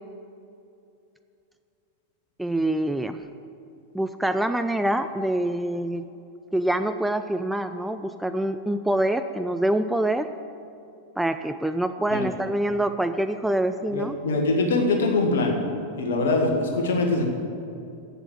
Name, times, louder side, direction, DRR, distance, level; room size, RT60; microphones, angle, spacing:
voice 1, 2.4-3.2 3.9-6.1 6.5-10.3 11.2-14.2, right 1 dB, 5° right, 9 dB, 0.4 m, -25 dB
voice 2, 13.9-15.6 15.9-17.3, left 2 dB, 60° left, 1 dB, 1.7 m, -23 dB
8.1 x 7.6 x 8.5 m, 2.6 s
figure-of-eight pair, 90°, 0 cm